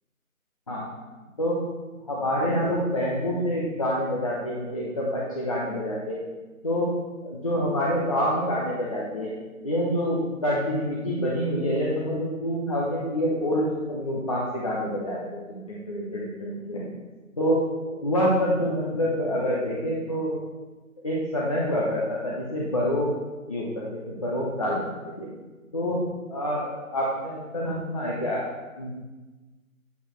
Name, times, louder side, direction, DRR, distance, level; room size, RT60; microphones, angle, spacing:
voice 1, 2.0-6.2 6.6-6.9 7.2-9.3 9.6-16.9 17.3-17.6 17.9-20.4 21.0-23.1 23.5-24.8 25.2-25.3 25.7-26.0 26.3-28.5 28.8-28.9, equal, 25° left, -4 dB, 0.9 m, -27 dB
8.5 x 8.1 x 3.2 m, 1.2 s
figure-of-eight pair, 160°, 43 cm